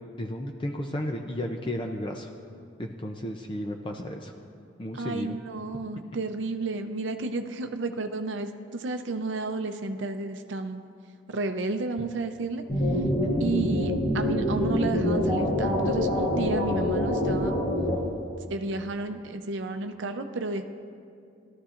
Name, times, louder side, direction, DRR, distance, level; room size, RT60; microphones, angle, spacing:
voice 1, 0.2-2.3 2.8-4.3 4.8-5.4 13.2-13.5, left 1 dB, 25° left, 3 dB, 0.5 m, -33 dB
voice 2, 4.9-10.8 11.3-12.6 13.4-17.6 18.5-20.6, right 3 dB, 70° right, 6 dB, 0.6 m, -32 dB
sound 1, 12.7-18.0, left 1 dB, 70° left, 3.5 m, -25 dB
18.5 x 13.0 x 2.5 m, 2.4 s
head